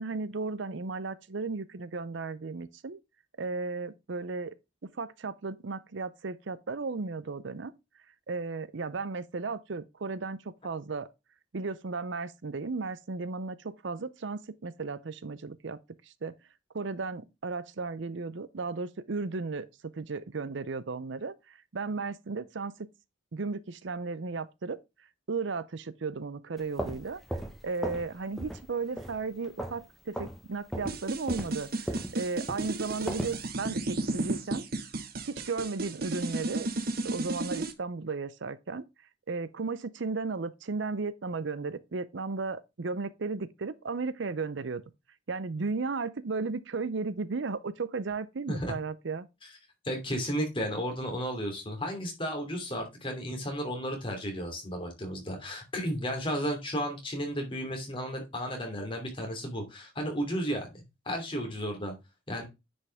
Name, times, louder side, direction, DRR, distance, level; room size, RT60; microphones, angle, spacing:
voice 1, 0.0-3.0 3.4-4.5 4.9-7.7 8.3-11.1 11.5-16.3 16.7-19.7 19.9-22.7 23.3-24.8 25.3-27.2 27.6-34.7 35.2-38.8 39.3-44.8 45.3-49.3, right 4 dB, 65° right, 0.6 m, -35 dB
sound 1, 26.6-28.1 28.4-28.7 29.0-29.9 30.1-30.4 30.7-33.4, right 1 dB, ahead, 1.2 m, -36 dB
sound 2, 30.9-37.7, right 2 dB, 50° right, 1.1 m, -33 dB
voice 2, 49.8-61.9 62.3-62.4, equal, 25° left, 2.9 m, -33 dB
9.8 x 5.3 x 3.4 m
head